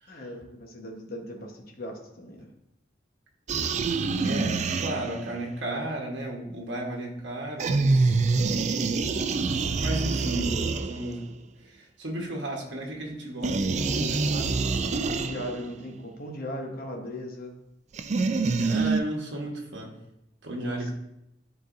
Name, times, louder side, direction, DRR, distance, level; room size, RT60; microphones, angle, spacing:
voice 1, 0.1-2.5 14.9-17.5 20.5-20.8, equal, 55° left, 1 dB, 1.1 m, -38 dB
sound 1, 3.5-5.4 7.6-11.3 13.4-15.7 17.9-19.0, right 3 dB, 40° right, 0.4 m, -26 dB
voice 2, 4.2-8.2 9.8-11.2 11.6-14.6 18.6-19.9 20.4-20.9, right 1 dB, 75° right, -1 dB, 1.2 m, -34 dB
10.5 x 3.9 x 2.6 m, 0.84 s
head